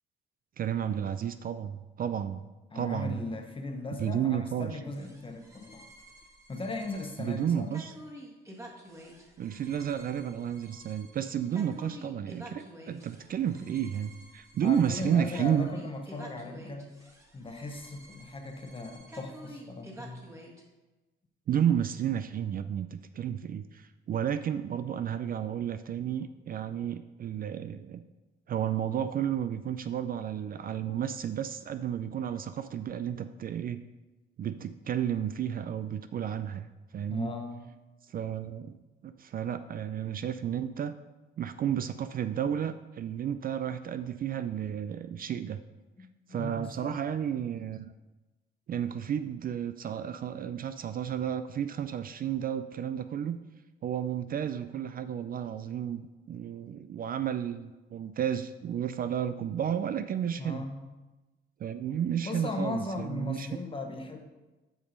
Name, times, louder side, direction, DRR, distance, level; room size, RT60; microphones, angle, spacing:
voice 1, 0.6-2.5 2.7-3.2 4.0-4.8 7.2-7.9 9.4-15.7 21.5-28.0 28.5-33.8 34.4-36.7 36.9-37.3 38.1-38.8 39.0-41.0 41.4-45.6 46.3-47.9 48.7-53.4 53.8-60.6 61.6-63.5, right 9 dB, 45° right, 11 dB, 0.4 m, -32 dB
voice 2, 2.7-5.9 6.5-7.8 14.6-20.3 30.8-31.0 32.3-32.4 37.1-37.7 46.0-47.0 60.4-60.9 62.2-64.2, left 2 dB, 25° left, 5 dB, 1.1 m, -38 dB
sound 1, 4.9-20.6, equal, 15° right, 1.5 m, -50 dB
7.0 x 5.3 x 5.1 m, 1.1 s
cardioid pair, 90°, 20 cm